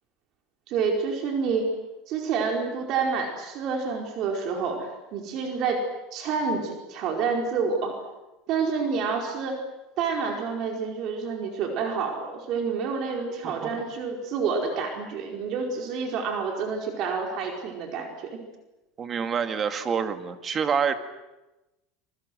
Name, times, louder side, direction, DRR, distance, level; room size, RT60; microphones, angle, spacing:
voice 1, 0.7-1.7 2.1-5.8 6.1-8.0 8.5-9.6 10.0-18.4, right 5 dB, 50° right, 2 dB, 4.8 m, -28 dB
voice 2, 19.0-20.9, right 6 dB, 30° right, 7 dB, 2.2 m, -27 dB
27.5 x 24.0 x 7.8 m, 1.0 s
cardioid pair, 145°, 0 cm